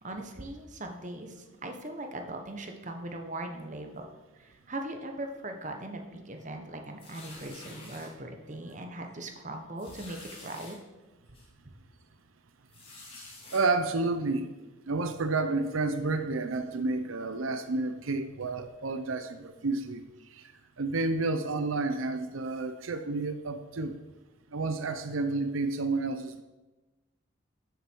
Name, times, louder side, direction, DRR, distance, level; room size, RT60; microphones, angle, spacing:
voice 1, 0.0-4.1 4.3-10.8, right 1 dB, 40° right, 4 dB, 1.2 m, -40 dB
sound 1, 7.0-8.1 8.7-8.9 9.1-9.2 9.8-10.7 11.3-11.5 12.7-13.6, left 2 dB, 30° left, 2.6 m, -48 dB
voice 2, 13.5-14.5 14.9-20.0 20.3-20.4 20.8-24.0 24.5-26.4, right 3 dB, 90° right, 8 dB, 0.7 m, -30 dB
13.5 x 6.7 x 4.6 m, 1.1 s
head